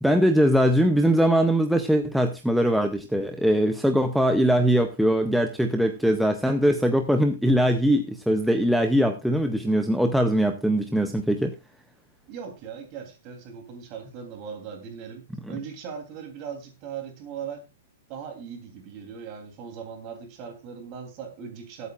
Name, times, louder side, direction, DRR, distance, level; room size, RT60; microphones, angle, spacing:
voice 1, 0.0-11.5, equal, ahead, 5 dB, 0.6 m, -21 dB
voice 2, 12.3-17.7 18.1-21.9, right 7 dB, 25° right, 4 dB, 3.0 m, -39 dB
21.5 x 8.2 x 2.4 m, 0.26 s
hypercardioid pair, 175°, 0 cm